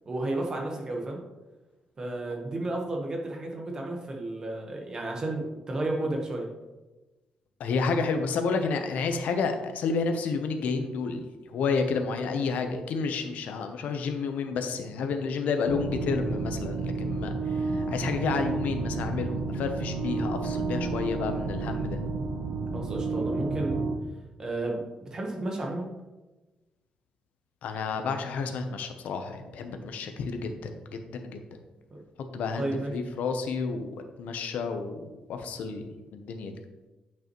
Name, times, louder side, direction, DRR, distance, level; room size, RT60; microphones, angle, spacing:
voice 1, 0.1-1.2 2.0-6.5 22.7-23.8 24.4-24.8 25.1-25.9 31.9-32.0 32.6-32.9, right 2 dB, 25° right, 1 dB, 1.2 m, -32 dB
voice 2, 7.6-22.0 27.6-31.4 32.3-35.0 35.3-35.8 36.1-36.6, left 4 dB, 80° left, 6 dB, 0.7 m, -30 dB
sound 1, 15.6-24.0, right 3 dB, 75° right, 0.8 m, -31 dB
9.0 x 5.4 x 3.0 m, 1.1 s
wide cardioid pair, 165°, 3 cm